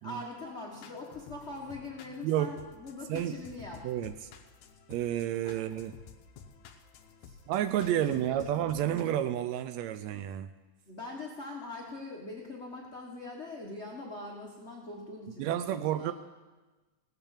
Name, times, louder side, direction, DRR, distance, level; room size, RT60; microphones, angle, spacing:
voice 1, 0.0-3.9 5.4-5.6 7.2-7.4 7.8-8.4 10.9-16.1, left 2 dB, 40° left, -2 dB, 0.9 m, -42 dB
sound 1, 0.7-9.0, left 7 dB, 70° left, 2.1 m, -52 dB
voice 2, 2.2-2.5 3.1-3.4 3.8-4.2 4.9-5.9 7.5-10.5 15.4-16.1, right 11 dB, 85° right, 10 dB, 1.5 m, -30 dB
17.0 x 8.8 x 7.2 m, 1.2 s
omnidirectional pair, 3.7 m